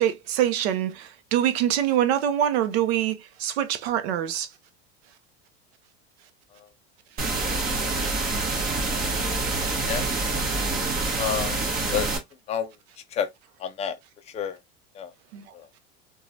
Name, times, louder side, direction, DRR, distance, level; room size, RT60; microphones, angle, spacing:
voice 1, 0.0-4.5 15.3-15.4, right 11 dB, 80° right, 0.6 m, -24 dB
sound 1, 7.2-12.2, right 3 dB, 30° right, 1.1 m, -26 dB
voice 2, 7.5-7.8 9.9-10.1 11.2-11.6 11.9-12.2 12.5-12.7 13.1-13.3 13.6-14.0 14.3-14.6 14.9-15.1 15.5-15.7, left 8 dB, 20° left, 0.4 m, -30 dB
3.0 x 2.3 x 2.6 m
supercardioid pair, 130°, 31 cm